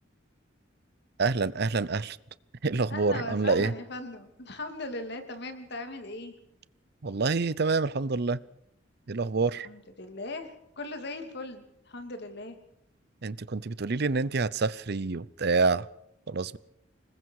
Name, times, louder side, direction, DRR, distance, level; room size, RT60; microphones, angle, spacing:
voice 1, 1.2-2.2 2.6-3.7 7.0-8.4 9.1-9.7 13.2-15.9 16.3-16.6, right 4 dB, 55° right, 19 dB, 0.7 m, -27 dB
voice 2, 2.9-6.3 9.6-12.6, left 2 dB, 60° left, 6 dB, 3.0 m, -39 dB
26.5 x 20.5 x 4.9 m, 0.81 s
head